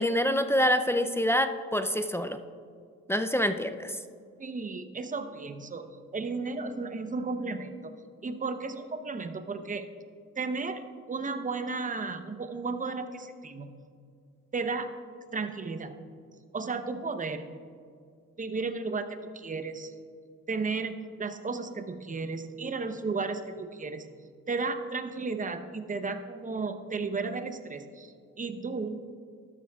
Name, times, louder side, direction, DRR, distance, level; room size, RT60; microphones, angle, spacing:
voice 1, 0.0-2.4 3.1-4.0, equal, 10° left, 8 dB, 0.4 m, -26 dB
voice 2, 4.4-7.9 8.2-9.9 10.4-13.7 14.5-14.9 15.3-15.9 16.5-17.5 18.4-19.9 20.5-24.1 24.5-29.1, right 4 dB, 25° right, 9 dB, 0.8 m, -34 dB
12.5 x 12.0 x 2.3 m, 2.2 s
cardioid pair, 90°, 30 cm